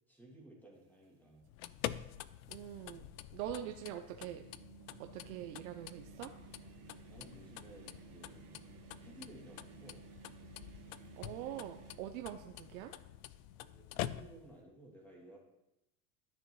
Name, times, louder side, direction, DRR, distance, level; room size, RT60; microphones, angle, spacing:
voice 1, 0.0-1.5 7.1-8.7 9.0-10.0 13.6-15.4, right 1 dB, 5° left, -2 dB, 2.4 m, -57 dB
sound 1, 1.0-1.1 2.2-12.0, right 9 dB, 55° right, 1.2 m, -57 dB
sound 2, 1.4-14.6, left 13 dB, 85° left, 0.5 m, -47 dB
voice 2, 2.5-3.1 3.3-4.5 5.0-6.3 11.2-12.9, right 11 dB, 85° right, 5 dB, 0.7 m, -44 dB
11.5 x 6.8 x 3.1 m, 0.89 s
supercardioid pair, 120°, 41 cm